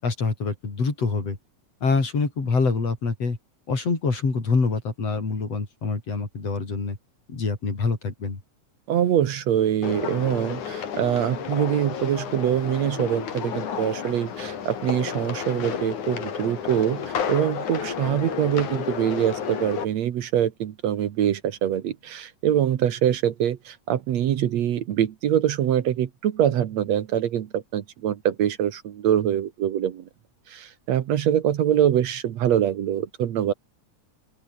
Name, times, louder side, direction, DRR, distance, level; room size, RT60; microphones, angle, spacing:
voice 1, 0.0-1.4 1.8-3.4 3.7-7.0 7.3-8.4, left 4 dB, 55° left, 5.9 m, -25 dB
voice 2, 8.9-30.0 30.5-33.5, right 10 dB, 70° right, 2.4 m, -24 dB
sound 1, 9.8-19.9, left 8 dB, 85° left, 4.1 m, -31 dB
open air
omnidirectional pair, 3.4 m